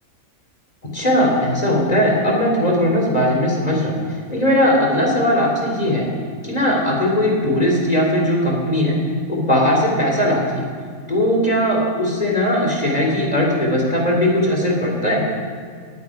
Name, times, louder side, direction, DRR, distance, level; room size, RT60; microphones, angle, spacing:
voice 1, 0.9-4.0 4.3-6.1 6.4-9.0 9.3-10.6 11.1-15.2, left 1 dB, 25° left, -1 dB, 3.0 m, -18 dB
10.5 x 8.6 x 9.6 m, 2.1 s
omnidirectional pair, 1.5 m